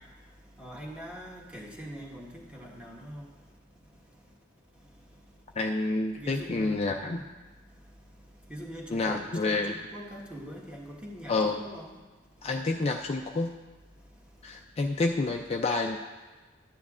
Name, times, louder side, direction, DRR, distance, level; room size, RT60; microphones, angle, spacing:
voice 1, 0.6-3.3 6.2-6.8 8.5-12.0, equal, 5° right, -3 dB, 1.4 m, -42 dB
voice 2, 5.6-7.2 8.9-9.7 11.3-11.6 12.4-13.5 14.4-16.0, left 3 dB, 30° left, 3 dB, 0.4 m, -28 dB
13.0 x 9.5 x 2.4 m, 1.3 s
head